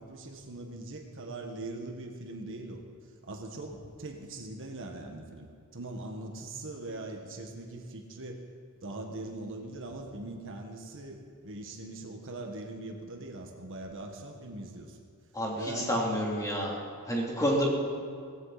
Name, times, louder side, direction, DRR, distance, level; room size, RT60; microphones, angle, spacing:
voice 1, 0.0-2.8 3.2-8.4 8.8-15.0 15.5-16.0, right 2 dB, 60° right, 3 dB, 1.6 m, -41 dB
voice 2, 15.3-16.8 17.1-17.7, equal, 15° left, -3 dB, 3.0 m, -29 dB
17.5 x 16.0 x 4.2 m, 2.3 s
head